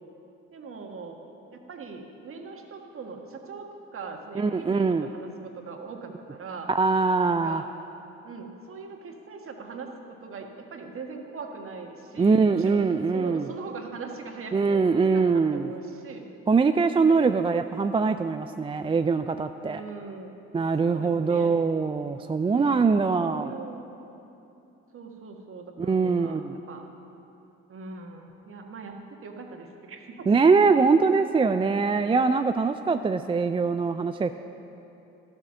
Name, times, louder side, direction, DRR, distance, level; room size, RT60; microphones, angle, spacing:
voice 1, 0.5-1.2 1.5-3.7 3.9-6.7 7.4-7.7 8.2-12.8 13.1-14.8 15.1-16.3 17.1-17.3 19.6-20.4 20.8-21.6 22.5-22.9 23.2-23.8 24.9-26.9 27.7-30.3, right 4 dB, 50° right, 3 dB, 1.5 m, -41 dB
voice 2, 4.4-5.1 6.7-7.6 12.2-13.5 14.5-15.7 16.5-19.8 20.5-23.5 25.8-26.6 30.3-34.4, right 4 dB, 20° right, 9 dB, 0.4 m, -23 dB
13.0 x 7.3 x 6.3 m, 2.9 s
hypercardioid pair, 60°, 29 cm